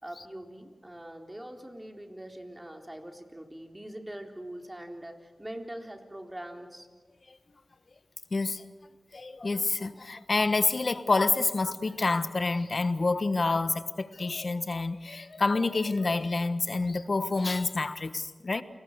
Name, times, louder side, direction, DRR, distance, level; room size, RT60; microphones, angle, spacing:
voice 1, 0.0-6.9, right 1 dB, 20° right, 3 dB, 3.7 m, -43 dB
voice 2, 8.3-8.6 9.1-18.6, left 3 dB, 60° left, 12 dB, 1.3 m, -28 dB
29.5 x 20.0 x 6.6 m, 1.4 s
cardioid pair, 40°, 0 cm